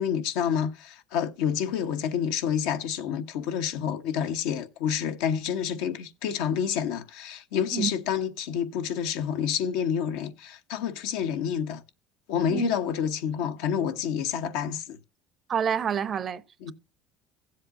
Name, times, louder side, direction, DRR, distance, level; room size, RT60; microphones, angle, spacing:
voice 1, 0.0-11.8 12.3-15.0 16.6-16.7, left 8 dB, 80° left, 1.0 m, -28 dB
voice 2, 15.5-16.4, right 7 dB, 45° right, 0.7 m, -27 dB
15.5 x 7.6 x 2.6 m
supercardioid pair, 90°, 0 cm